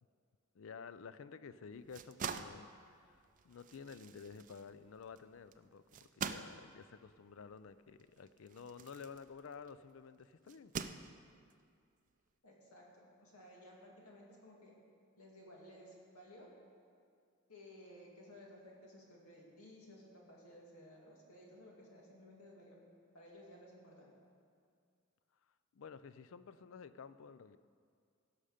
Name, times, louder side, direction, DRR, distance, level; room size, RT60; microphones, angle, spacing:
voice 1, 0.5-10.7 25.7-27.6, left 5 dB, 65° left, 14 dB, 0.4 m, -52 dB
sound 1, 1.7-9.8 10.5-11.5, right 6 dB, 35° right, 0.4 m, -46 dB
voice 2, 12.4-14.8 15.2-16.5 17.5-22.8 23.1-24.1, left 1 dB, 85° left, -2 dB, 2.4 m, -57 dB
17.0 x 6.5 x 5.0 m, 2.2 s
head